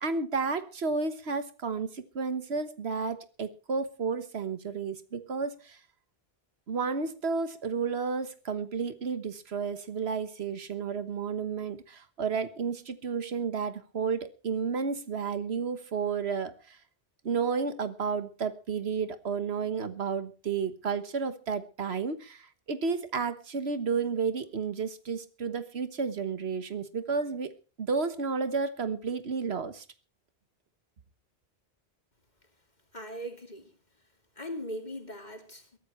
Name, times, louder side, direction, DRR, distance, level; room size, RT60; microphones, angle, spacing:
voice 1, 0.0-5.8 6.7-16.8 17.2-27.5 27.8-29.8, right 5 dB, 80° right, 1.5 m, -32 dB
voice 2, 32.9-33.7 34.3-35.8, equal, 45° left, 3.2 m, -39 dB
22.5 x 13.0 x 3.2 m
omnidirectional pair, 1.1 m